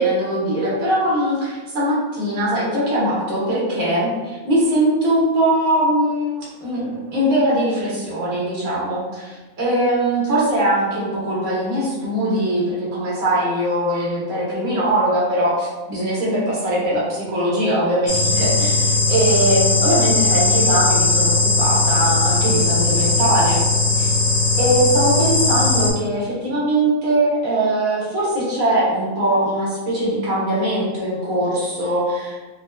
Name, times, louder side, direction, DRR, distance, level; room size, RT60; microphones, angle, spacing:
voice 1, 0.0-4.1 4.4-23.6 24.0-24.1 24.6-32.4, right 1 dB, 70° right, -7 dB, 1.5 m, -21 dB
sound 1, 18.1-25.9, left 3 dB, 70° left, 1.0 m, -18 dB
4.3 x 2.0 x 2.2 m, 1.2 s
omnidirectional pair, 1.6 m